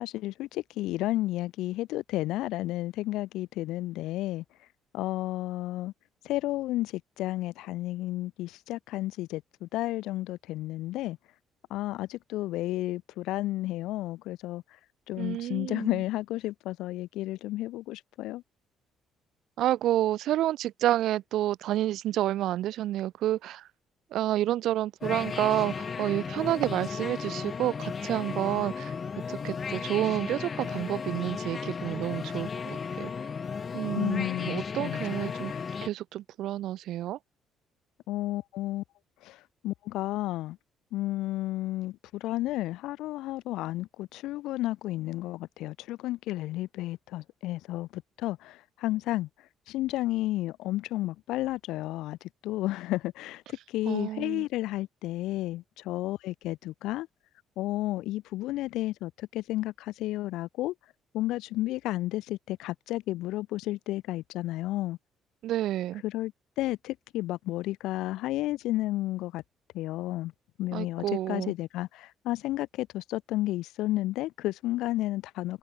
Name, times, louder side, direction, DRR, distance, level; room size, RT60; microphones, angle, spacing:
voice 1, 0.0-4.4 4.9-5.9 6.2-11.2 11.7-14.6 15.1-18.4 34.0-35.6 38.1-38.8 39.2-39.4 39.6-40.6 40.9-49.3 49.7-52.2 52.4-53.4 53.7-57.1 57.6-60.7 61.1-65.0 66.0-66.3 66.6-69.4 69.7-70.3 70.6-75.6, left 16 dB, 85° left, 0.3 m, -32 dB
voice 2, 15.2-16.0 19.6-23.7 24.1-28.9 29.3-33.1 33.7-35.5 35.8-37.2 53.9-54.5 65.4-66.0 70.7-71.5, right 13 dB, 75° right, 0.4 m, -29 dB
sound 1, 25.0-35.9, left 6 dB, 40° left, 1.2 m, -35 dB
cardioid pair, 100°, 0 cm